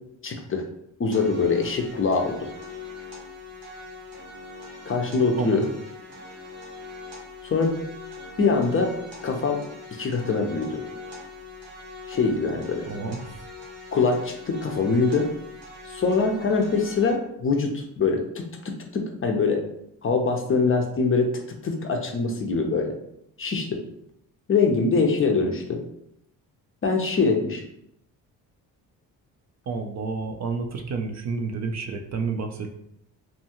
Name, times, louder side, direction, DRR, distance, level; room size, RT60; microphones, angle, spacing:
voice 1, 0.2-0.7 1.0-2.5 4.9-5.7 7.4-7.8 8.4-8.9 9.2-9.6 9.9-10.8 12.1-12.8 13.9-15.3 15.9-18.4 18.9-19.6 20.0-21.3 21.6-22.9 23.4-23.8 24.5-25.8 26.8-27.6, left 4 dB, 35° left, 3 dB, 0.5 m, -23 dB
sound 1, 1.1-17.1, left 3 dB, 90° right, 1.3 m, -41 dB
voice 2, 5.4-5.7 12.9-13.4 29.7-32.7, right 4 dB, 45° right, 5 dB, 0.4 m, -30 dB
2.7 x 2.3 x 2.9 m, 0.76 s
supercardioid pair, 65°, 39 cm